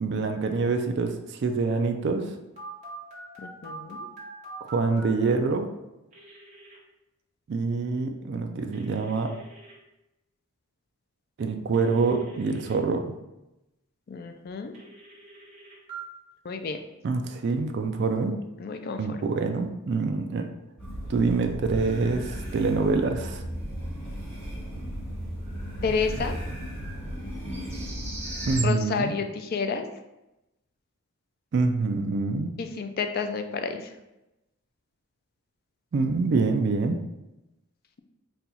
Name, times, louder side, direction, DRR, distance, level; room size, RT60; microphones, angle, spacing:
voice 1, 0.0-2.3 4.6-5.7 7.5-9.3 11.4-13.1 17.0-18.4 19.0-20.5 21.1-23.4 28.5-29.2 31.5-32.5 35.9-37.0, right 4 dB, 50° right, 5 dB, 0.3 m, -26 dB
Telephone, 2.6-5.1 6.1-6.8 8.7-9.7 11.7-12.7 14.7-16.0, right 2 dB, 30° right, 1.1 m, -44 dB
voice 2, 3.4-4.0 14.1-14.7 16.4-16.8 18.6-19.2 25.8-26.4 28.6-29.9 32.6-33.9, left 5 dB, 45° left, 7 dB, 0.3 m, -30 dB
sound 1, 20.8-28.6, equal, 5° left, 1.2 m, -35 dB
sound 2, 23.5-28.7, right 3 dB, 10° right, 0.6 m, -42 dB
4.2 x 2.3 x 4.0 m, 0.96 s
head